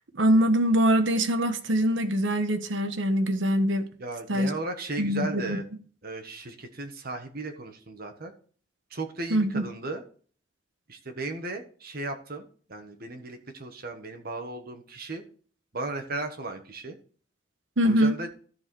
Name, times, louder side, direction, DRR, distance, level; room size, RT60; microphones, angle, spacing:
voice 1, 0.1-3.9 4.3-4.5 5.0-5.6 9.3-9.6 17.8-18.2, equal, 75° right, 1.3 m, -23 dB
voice 2, 4.0-5.6 6.0-8.3 8.9-10.0 10.9-12.4 12.7-15.2 15.7-17.0 17.8-18.3, right 2 dB, 50° right, 1.4 m, -36 dB
14.0 x 4.7 x 4.5 m
head